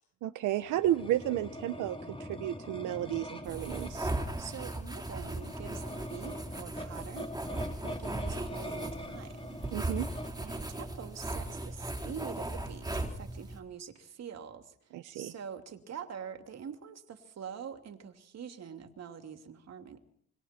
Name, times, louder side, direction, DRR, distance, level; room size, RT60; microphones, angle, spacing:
voice 1, 0.2-4.1 9.7-10.1 14.9-15.3, right 13 dB, 90° right, 9 dB, 1.1 m, -32 dB
sound 1, 0.6-10.3, left 1 dB, 20° left, 3.5 m, -43 dB
sound 2, 3.4-13.6, right 2 dB, 15° right, 4.2 m, -38 dB
voice 2, 4.4-7.3 7.8-9.6 10.4-20.0, right 7 dB, 60° right, 6 dB, 2.9 m, -45 dB
26.0 x 24.0 x 4.5 m, 0.64 s
cardioid pair, 90°, 30 cm